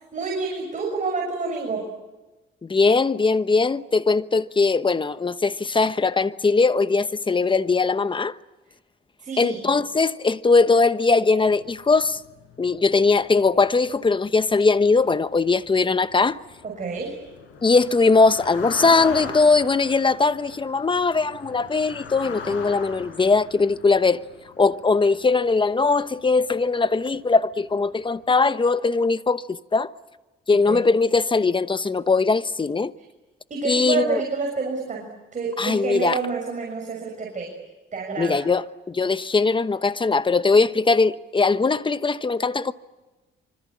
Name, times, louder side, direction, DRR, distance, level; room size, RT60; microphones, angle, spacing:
voice 1, 0.1-1.9 9.2-9.6 16.6-17.2 30.5-30.9 33.5-37.6 37.9-38.4, right 4 dB, 40° right, 6.6 m, -28 dB
voice 2, 2.6-8.3 9.4-12.2 12.6-16.4 17.6-24.2 24.6-29.9 30.5-32.9 33.6-34.2 35.6-36.2 38.2-42.7, left 4 dB, 25° left, 1.1 m, -20 dB
sound 1, 11.4-26.8 27.0-27.4 27.8-28.0, left 5 dB, 80° left, 7.0 m, -41 dB
26.0 x 25.5 x 8.7 m
cardioid pair, 90°, 20 cm